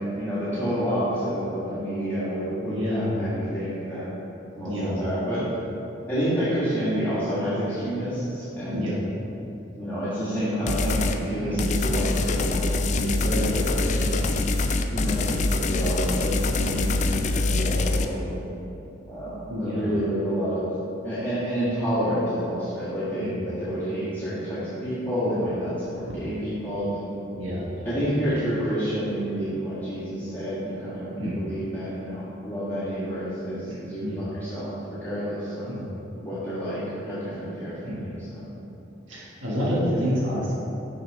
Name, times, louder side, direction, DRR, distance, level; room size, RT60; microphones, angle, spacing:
voice 1, 0.2-4.1 4.6-5.4 6.1-8.9 9.8-14.3 14.9-18.4 19.1-20.7 21.0-27.0 27.8-35.7 36.1-38.4 39.8-40.2, equal, 10° left, -13 dB, 1.9 m, -29 dB
voice 2, 2.6-3.1 4.6-5.0 8.7-9.0 11.4-11.6 14.0-14.3 16.7-17.1 19.5-19.9 23.2-23.4 27.3-27.9 31.1-31.4 33.7-34.2 35.7-35.9 37.8-38.0 39.1-40.5, equal, 75° right, -7 dB, 1.6 m, -29 dB
sound 1, 10.7-11.2 11.6-18.1, left 3 dB, 35° left, 0.4 m, -24 dB
6.5 x 5.8 x 5.5 m, 2.9 s
head